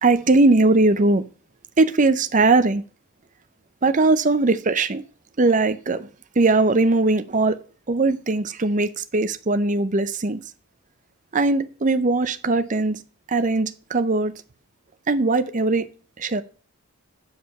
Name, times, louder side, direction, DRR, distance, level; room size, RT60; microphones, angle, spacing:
voice 1, 0.0-1.2 1.8-2.8 3.8-5.0 5.4-6.1 6.4-7.6 7.9-10.4 11.3-13.0 13.3-14.3 15.1-15.9 16.2-16.4, right 3 dB, 35° right, 0.6 m, -20 dB
8.4 x 5.0 x 5.5 m
head